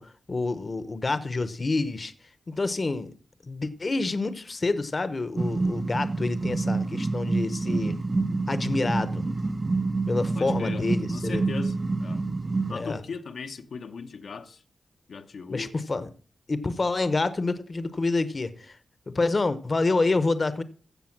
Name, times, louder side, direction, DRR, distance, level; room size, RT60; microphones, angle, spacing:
voice 1, 0.0-2.1 2.5-3.1 3.4-7.9 8.5-9.3 10.1-11.4 12.7-13.0 15.5-16.1 16.5-18.8 19.1-20.6, left 3 dB, 35° left, 0.9 m, -28 dB
sound 1, 5.4-12.7, right 3 dB, 30° right, 0.5 m, -27 dB
voice 2, 10.3-10.9 11.1-12.2 12.7-14.6 15.1-15.8, left 5 dB, 75° left, 1.0 m, -38 dB
15.0 x 6.9 x 5.9 m
wide cardioid pair, 115°, 0 cm